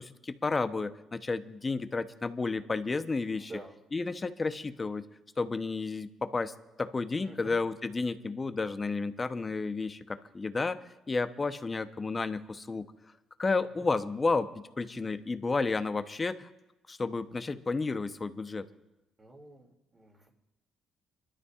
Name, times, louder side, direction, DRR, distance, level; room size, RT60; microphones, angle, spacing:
voice 1, 0.0-3.5 3.9-5.0 5.4-10.8 11.1-12.8 13.4-16.5 16.9-18.7, left 3 dB, 30° left, 10 dB, 0.8 m, -32 dB
voice 2, 3.3-3.7 7.2-7.6 13.6-13.9 19.2-20.3, right 2 dB, 30° right, 1 dB, 2.6 m, -49 dB
28.5 x 12.5 x 2.5 m, 0.95 s
supercardioid pair, 80°, 0 cm